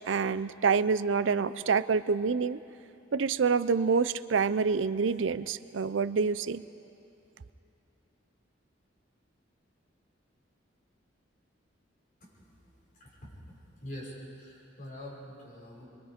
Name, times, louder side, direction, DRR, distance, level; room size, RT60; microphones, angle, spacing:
voice 1, 0.1-2.6 3.1-6.6, right 5 dB, 80° right, 15 dB, 0.5 m, -27 dB
voice 2, 13.0-13.3 13.8-15.9, equal, 45° left, -5 dB, 6.3 m, -44 dB
25.5 x 23.5 x 5.1 m, 2.6 s
head